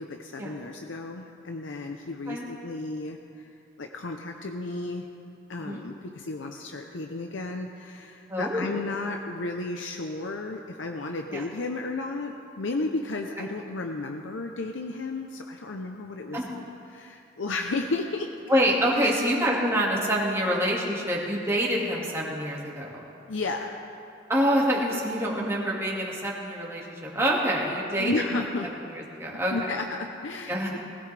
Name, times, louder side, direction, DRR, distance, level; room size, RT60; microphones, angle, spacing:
voice 1, 0.0-3.5 3.8-5.1 5.5-16.4 16.9-18.3 19.0-19.3 23.3-23.8 28.0-28.7 29.3-30.8, left 3 dB, 80° left, 3 dB, 0.7 m, -33 dB
voice 2, 5.6-5.9 8.3-8.7 11.3-11.4 16.3-16.5 18.5-23.0 24.3-28.4 28.9-29.7 30.5-30.8, equal, 15° right, -4 dB, 2.0 m, -26 dB
19.5 x 16.0 x 3.4 m, 2.7 s
head